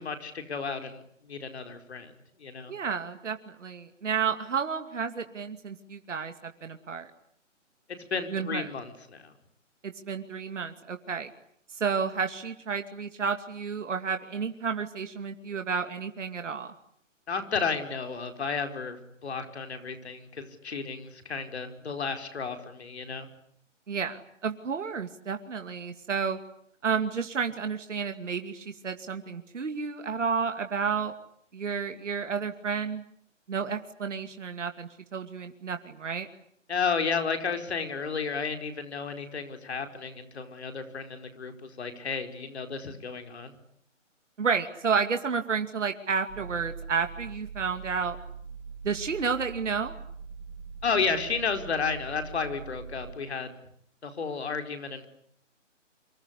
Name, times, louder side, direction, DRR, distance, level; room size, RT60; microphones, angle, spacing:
voice 1, 0.0-2.1 2.4-2.7 8.1-9.3 17.3-23.3 36.7-43.5 50.8-53.6 54.0-55.1, left 5 dB, 55° left, 7 dB, 4.9 m, -32 dB
voice 2, 2.7-7.1 8.3-8.7 9.8-11.3 11.7-16.7 23.9-26.4 26.8-31.1 31.5-33.0 33.5-36.3 44.4-48.2 48.8-50.0, right 6 dB, 70° right, 7 dB, 2.5 m, -31 dB
sound 1, 46.3-53.1, right 5 dB, 25° right, 4.0 m, -42 dB
28.0 x 25.5 x 8.4 m, 0.69 s
hypercardioid pair, 160°, 38 cm